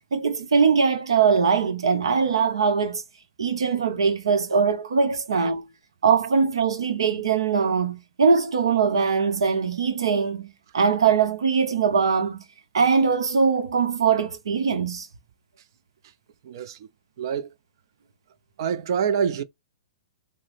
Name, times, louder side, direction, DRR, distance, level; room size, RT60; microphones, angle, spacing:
voice 1, 0.1-3.0 3.4-5.7 6.0-12.4 12.7-15.1, right 5 dB, 80° right, 0.8 m, -21 dB
voice 2, 16.4-16.9 17.2-17.5 18.6-19.4, right 7 dB, 55° right, 0.4 m, -26 dB
3.6 x 2.0 x 3.3 m
hypercardioid pair, 125°, 3 cm